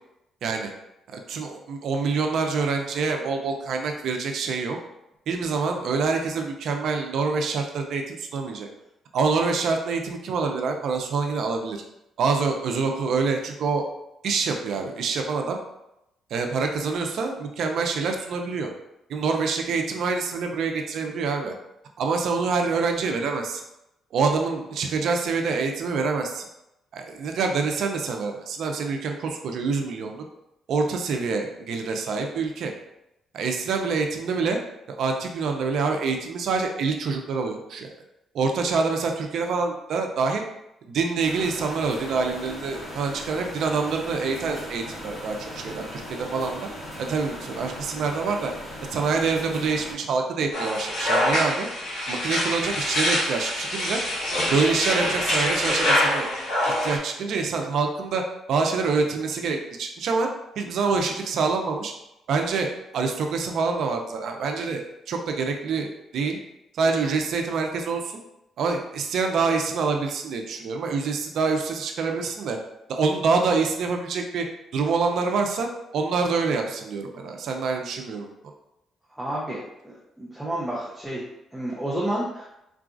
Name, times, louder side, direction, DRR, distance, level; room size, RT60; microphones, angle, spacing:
voice 1, 0.4-0.7 1.1-4.8 5.3-8.7 9.1-11.8 12.2-13.9 14.2-15.6 16.3-18.7 19.1-21.5 22.0-23.6 24.1-26.4 26.9-30.2 30.7-32.7 33.3-34.6 34.9-37.9 38.3-40.4 40.9-46.7 47.0-48.5 48.9-51.7 52.1-54.0 54.5-56.3 56.8-58.2 58.5-60.3 60.6-61.9 62.3-65.9 66.1-66.4 66.7-68.2 68.6-72.6 72.9-74.5 74.7-78.3, right 4 dB, 70° right, 3 dB, 0.5 m, -26 dB
sound 1, 41.2-49.9, left 1 dB, 40° left, 1.4 m, -38 dB
sound 2, 50.5-57.0, left 1 dB, 80° left, 1.0 m, -25 dB
voice 2, 79.1-79.6 79.8-81.3 81.5-82.5, right 1 dB, 5° right, -5 dB, 0.6 m, -30 dB
3.8 x 2.4 x 2.4 m, 0.87 s
cardioid pair, 90°, 0 cm